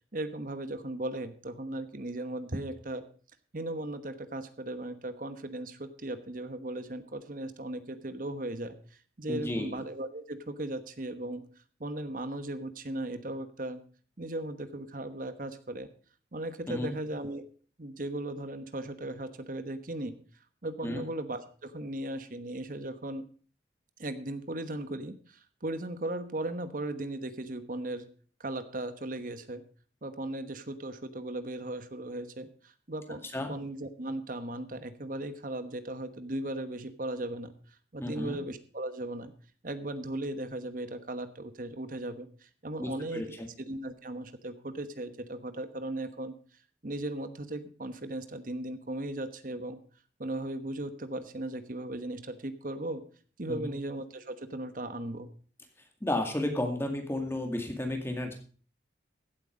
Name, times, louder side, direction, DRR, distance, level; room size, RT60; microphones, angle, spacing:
voice 1, 0.1-3.0 3.5-8.8 9.2-11.4 11.8-13.8 14.2-15.9 16.3-17.4 17.8-20.1 20.6-23.2 24.0-28.1 28.4-29.6 30.0-33.2 33.5-37.5 37.9-39.3 39.6-43.3 43.6-46.3 46.8-49.8 50.2-53.0 53.4-55.3, right 1 dB, 45° right, 11 dB, 1.2 m, -37 dB
voice 2, 9.3-9.7 16.7-16.9 20.8-21.0 33.3-33.5 38.0-38.4 42.8-43.5 53.5-53.7 56.0-58.3, left 1 dB, 15° left, 3 dB, 2.1 m, -32 dB
16.0 x 8.1 x 5.1 m, 0.42 s
head